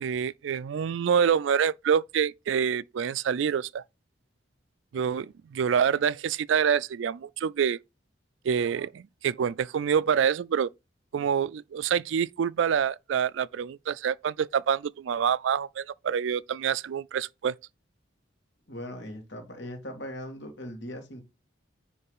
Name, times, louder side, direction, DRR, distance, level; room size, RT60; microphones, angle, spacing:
voice 1, 0.0-3.8 4.9-7.8 8.4-10.7 11.1-17.5, right 7 dB, 75° right, 0.3 m, -26 dB
voice 2, 18.7-21.2, left 1 dB, 65° left, 2.3 m, -39 dB
9.7 x 3.3 x 5.4 m
head